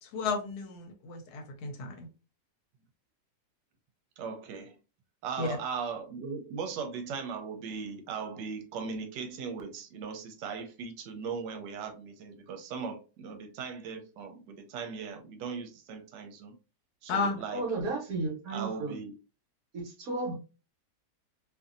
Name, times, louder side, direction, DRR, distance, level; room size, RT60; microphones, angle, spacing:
voice 1, 0.0-2.1 5.4-5.6 17.1-17.4, left 4 dB, 70° left, 1.1 m, -33 dB
voice 2, 4.2-4.8 5.2-16.6 17.0-17.6 18.5-19.2, right 5 dB, 85° right, 1.2 m, -38 dB
voice 3, 17.5-19.0 19.7-20.3, right 3 dB, 60° right, 1.3 m, -33 dB
2.8 x 2.6 x 2.4 m
omnidirectional pair, 1.9 m